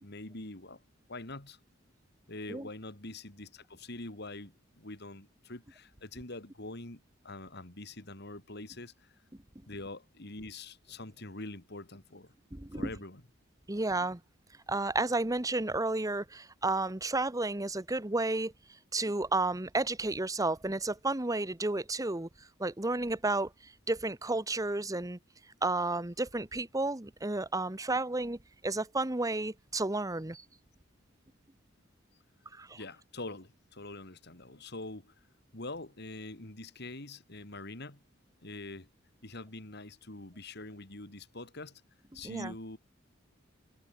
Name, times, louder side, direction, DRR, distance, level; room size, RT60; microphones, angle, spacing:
voice 1, 0.0-0.8 1.1-1.6 2.3-9.1 9.7-12.3 12.7-13.2 32.7-35.1 35.5-38.0 38.4-38.9 39.2-41.8 42.1-42.8, left 2 dB, 55° left, 3.5 m, -44 dB
voice 2, 12.5-12.9 13.7-14.2 14.7-18.5 18.9-22.3 22.6-25.2 25.6-28.4 28.6-30.4 32.5-32.8 42.2-42.5, right 2 dB, 15° right, 1.0 m, -32 dB
head